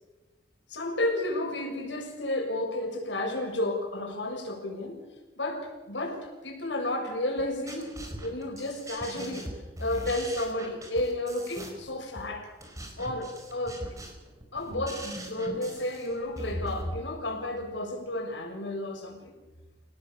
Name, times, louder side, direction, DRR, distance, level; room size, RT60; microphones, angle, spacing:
voice 1, 0.7-5.0 5.3-9.5 9.8-12.5 13.0-13.8 14.5-19.3, left 1 dB, 80° left, 2 dB, 6.8 m, -32 dB
sound 1, 7.4-17.0, equal, 20° right, 5.0 m, -40 dB
29.0 x 18.0 x 7.3 m, 1.2 s
head